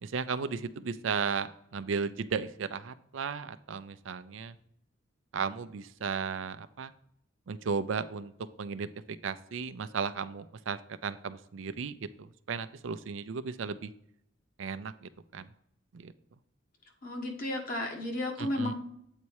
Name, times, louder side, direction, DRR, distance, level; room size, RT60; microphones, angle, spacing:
voice 1, 0.0-4.6 5.3-6.9 7.5-8.3 8.6-8.9 9.2-13.9 14.6-15.5 15.9-16.1 18.4-18.7, right 5 dB, 80° right, 12 dB, 0.5 m, -35 dB
voice 2, 17.0-18.8, left 1 dB, 50° left, 0 dB, 1.6 m, -33 dB
8.2 x 4.2 x 4.7 m, 0.72 s
head